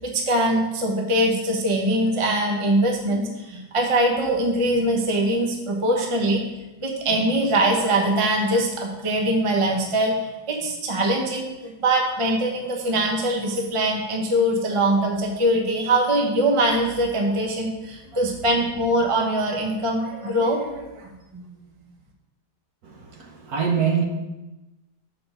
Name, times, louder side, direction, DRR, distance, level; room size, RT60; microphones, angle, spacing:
voice 1, 0.0-6.4 6.8-21.1, right 1 dB, 25° right, 0 dB, 0.9 m, -22 dB
voice 2, 22.8-24.0, right 7 dB, 65° right, 2 dB, 1.5 m, -24 dB
6.5 x 4.7 x 6.4 m, 1.0 s
omnidirectional pair, 1.8 m